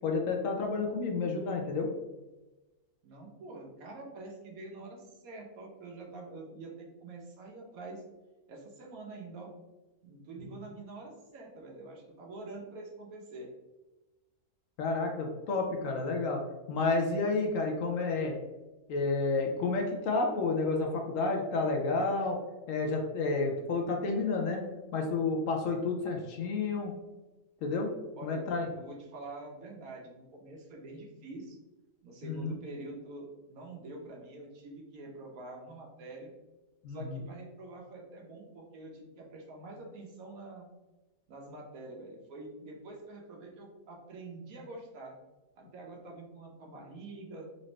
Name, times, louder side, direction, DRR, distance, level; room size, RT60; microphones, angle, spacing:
voice 1, 0.0-1.9 14.8-16.4 16.7-18.3 18.9-22.4 22.7-24.6 24.9-26.9 27.6-27.9 28.2-28.7 32.2-32.6 36.8-37.2, left 3 dB, 65° left, 1 dB, 0.9 m, -30 dB
voice 2, 3.0-8.0 8.5-9.5 10.0-13.5 28.2-31.6 32.0-36.3 36.9-40.7 41.3-45.2 45.6-47.5, right 2 dB, 70° right, 0 dB, 1.2 m, -46 dB
4.0 x 2.6 x 3.1 m, 1.1 s
omnidirectional pair, 1.6 m